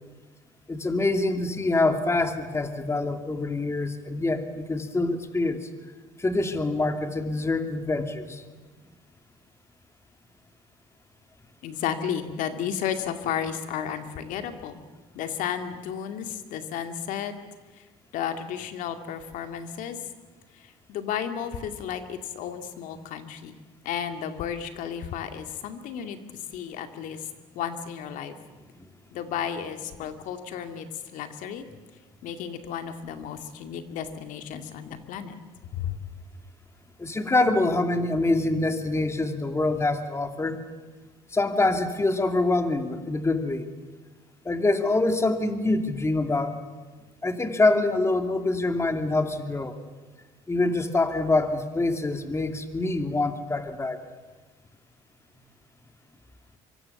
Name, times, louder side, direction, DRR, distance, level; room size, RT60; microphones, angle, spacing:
voice 1, 0.7-5.7 6.2-8.4 37.0-40.6 41.3-43.7 44.4-46.6 47.2-49.8 50.5-54.0, left 2 dB, 20° left, 7 dB, 2.6 m, -25 dB
voice 2, 11.6-14.8 15.1-17.3 17.7-17.9 18.1-20.0 20.5-23.6 23.8-27.3 27.5-28.4 29.1-31.6 32.2-35.4 35.7-36.0, left 8 dB, 70° left, 7 dB, 2.3 m, -33 dB
24.5 x 24.0 x 7.1 m, 1.3 s
supercardioid pair, 75°, 14 cm